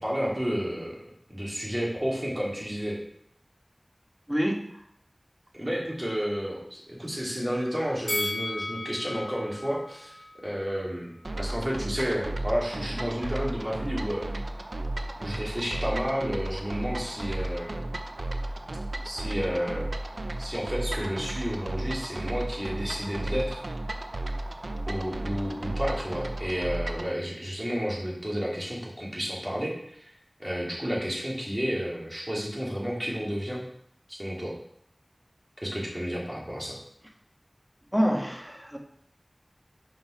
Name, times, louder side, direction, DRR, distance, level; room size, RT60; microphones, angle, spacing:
voice 1, 0.0-1.0 1.3-3.0 5.5-10.2 10.4-11.1 11.4-14.3 15.2-17.8 19.0-19.8 20.4-23.6 24.9-30.1 30.4-33.7 34.1-34.6 35.6-36.8, equal, 25° right, -4 dB, 2.8 m, -31 dB
voice 2, 4.3-4.9 13.2-13.3 37.9-38.8, equal, 5° right, 2 dB, 1.5 m, -27 dB
Bell, 8.1-11.3 11.6-11.7, left 1 dB, 25° left, 2.8 m, -35 dB
sound 1, 11.2-27.1, right 1 dB, 75° right, 0.6 m, -34 dB
5.6 x 5.6 x 5.7 m, 0.69 s
wide cardioid pair, 40°, 0 cm